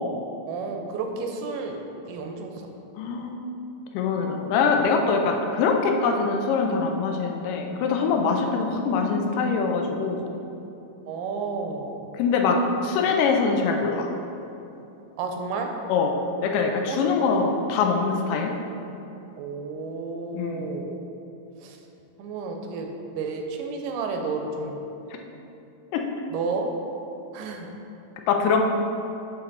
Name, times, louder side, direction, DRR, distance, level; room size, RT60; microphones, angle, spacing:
voice 1, 0.5-1.8 2.1-2.5 11.1-12.1 15.2-15.7 16.9-17.1 19.4-20.9 21.6-21.8 22.2-22.9 23.2-24.8 26.3-26.7 27.3-27.7, right 4 dB, 90° right, 3 dB, 2.3 m, -31 dB
voice 2, 3.0-3.4 3.9-10.3 12.2-14.1 15.9-16.1 16.4-18.5 20.3-20.8 25.9-26.0 28.3-28.6, left 5 dB, 80° left, 3 dB, 2.2 m, -23 dB
9.2 x 4.5 x 4.0 m, 2.9 s
omnidirectional pair, 3.9 m